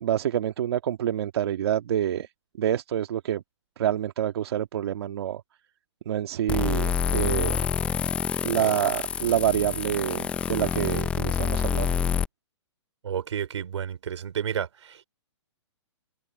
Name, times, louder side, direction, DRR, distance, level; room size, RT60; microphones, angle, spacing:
voice 1, 0.0-2.3 2.6-3.4 3.8-5.4 6.1-7.6 8.4-11.9, right 11 dB, 55° right, 1.8 m, -27 dB
sound 1, 6.5-12.2, left 7 dB, 10° left, 0.4 m, -27 dB
voice 2, 13.0-15.1, right 8 dB, 75° right, 4.3 m, -31 dB
open air
hypercardioid pair, 155°, 15 cm